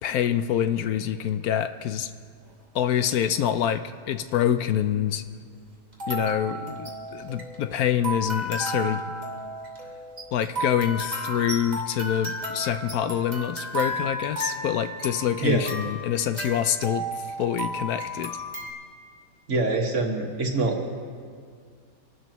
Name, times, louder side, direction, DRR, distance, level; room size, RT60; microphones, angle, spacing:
voice 1, 0.0-2.1 2.7-5.2 6.1-9.0 10.3-17.1 17.4-18.3, left 10 dB, 70° left, 10 dB, 0.9 m, -26 dB
sound 1, 3.0-3.5 4.3-4.4 5.9-18.7, right 1 dB, 25° right, 2.4 m, -33 dB
voice 2, 19.5-20.9, right 3 dB, 45° right, 1 dB, 1.8 m, -25 dB
27.0 x 12.5 x 3.0 m, 2.1 s
omnidirectional pair, 1.9 m